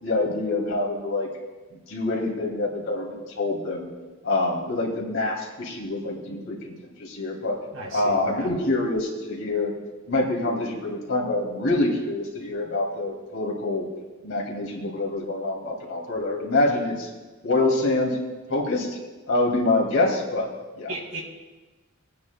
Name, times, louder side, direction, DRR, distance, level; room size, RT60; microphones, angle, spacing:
voice 1, 0.0-1.3 1.9-3.9 4.2-7.6 7.9-9.7 10.1-13.9 14.2-17.1 17.4-18.2 18.5-19.0 19.3-20.5 20.8-20.9, left 2 dB, 70° left, -1 dB, 2.7 m, -26 dB
voice 2, 7.7-8.5 20.9-21.2, right 1 dB, 85° right, -3 dB, 3.4 m, -36 dB
23.5 x 9.5 x 2.3 m, 1.2 s
head